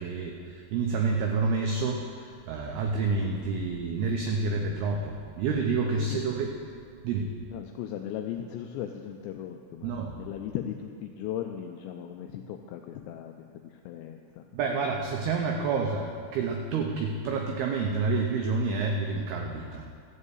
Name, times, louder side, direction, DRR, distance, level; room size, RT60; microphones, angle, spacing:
voice 1, 0.0-6.5 7.0-7.3 9.8-10.1 14.5-19.9, right 4 dB, 90° right, 2 dB, 2.2 m, -29 dB
voice 2, 6.0-6.3 7.5-13.3 13.6-14.5, left 10 dB, 90° left, 4 dB, 2.5 m, -37 dB
14.0 x 5.5 x 8.1 m, 2.2 s
omnidirectional pair, 5.6 m